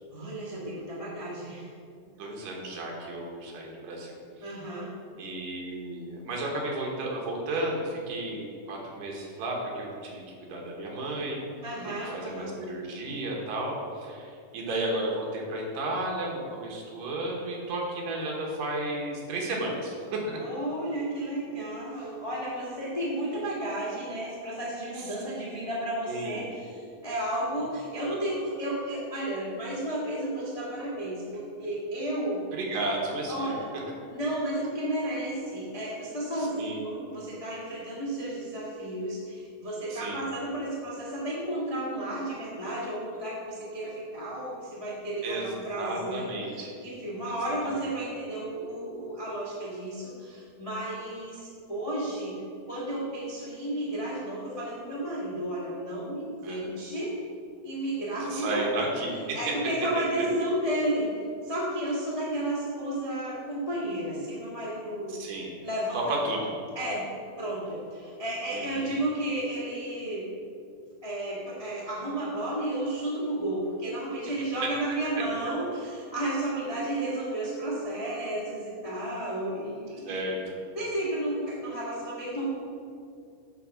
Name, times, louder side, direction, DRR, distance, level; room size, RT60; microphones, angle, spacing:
voice 1, 0.1-1.7 4.4-4.9 11.6-12.5 20.3-32.4 33.3-33.6 34.1-46.2 46.5-52.3 52.7-57.1 57.6-58.7 59.3-61.1 61.4-65.1 65.6-66.2 66.7-67.0 67.4-70.2 71.0-80.2 80.7-82.5, right 1 dB, 35° left, -7 dB, 0.5 m, -32 dB
voice 2, 2.1-4.1 4.4-4.5 5.2-11.4 11.8-20.4 25.0-25.1 26.1-26.4 32.5-33.6 36.3-36.8 39.9-40.2 45.2-46.7 47.2-47.5 56.4-56.7 58.2-59.4 60.0-60.1 65.1-65.5 65.9-66.5 68.5-68.9 75.4-75.5 80.1-80.6, right 1 dB, 70° right, -1 dB, 2.8 m, -33 dB
9.8 x 4.1 x 6.3 m, 2.3 s
omnidirectional pair, 4.3 m